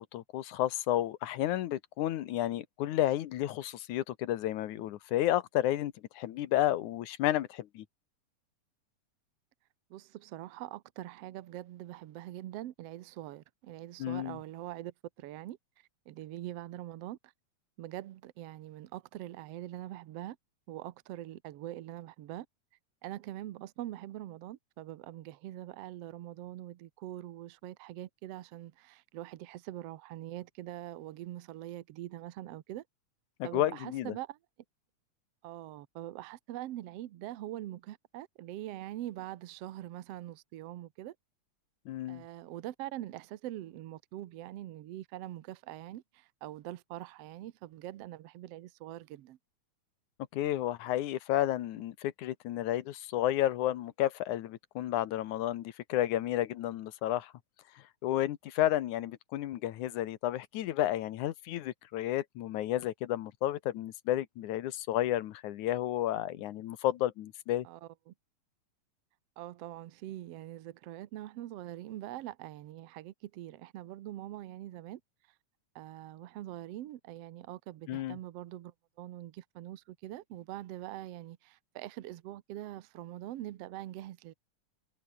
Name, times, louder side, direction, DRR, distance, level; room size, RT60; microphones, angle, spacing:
voice 1, 0.0-7.9 14.0-14.4 33.4-34.2 41.9-42.2 50.3-57.3 58.0-67.7 77.9-78.2, left 13 dB, 85° left, 2.6 m, -31 dB
voice 2, 9.9-15.6 16.1-17.3 17.8-20.4 20.7-22.5 23.0-32.8 33.4-34.4 35.4-41.2 42.1-49.4 67.6-68.1 69.4-75.0 75.8-84.3, right 14 dB, 65° right, 1.8 m, -43 dB
omnidirectional pair, 3.4 m